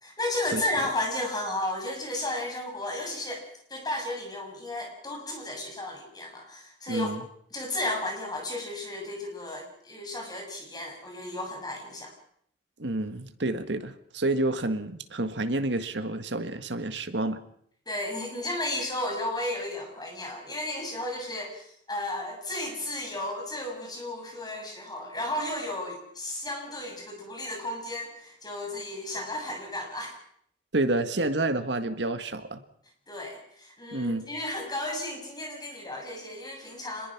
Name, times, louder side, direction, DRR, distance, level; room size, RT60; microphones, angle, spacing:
voice 1, 0.0-7.1 7.5-12.1 17.9-30.2 33.1-37.1, left 1 dB, 25° left, 2 dB, 6.8 m, -33 dB
voice 2, 6.9-7.2 12.8-17.4 30.7-32.6 33.9-34.3, right 2 dB, 75° right, 9 dB, 1.7 m, -29 dB
25.5 x 21.5 x 6.0 m, 0.67 s
head